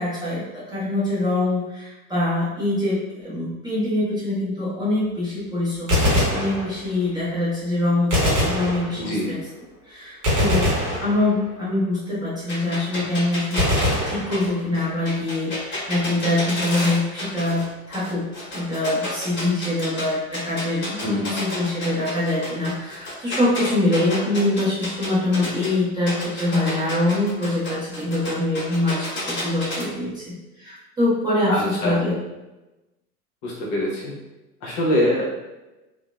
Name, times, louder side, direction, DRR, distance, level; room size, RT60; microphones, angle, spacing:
voice 1, 0.0-9.4 9.8-18.3 18.5-32.1, left 2 dB, 10° right, -10 dB, 0.5 m, -24 dB
Gunshot gunfire, 5.8-7.1 8.1-9.3 10.2-11.7 13.6-14.9, left 1 dB, 35° right, 0.9 m, -23 dB
voice 2, 9.0-9.3 21.0-21.3 31.5-32.0 33.4-34.1 34.6-35.2, left 1 dB, 40° left, -3 dB, 0.8 m, -23 dB
sound 1, 12.5-17.7 17.9-20.0 20.3-25.7 26.1-29.8, left 1 dB, 25° left, 1.1 m, -31 dB
2.7 x 2.0 x 2.2 m, 1.0 s
figure-of-eight pair, 80°, 45 cm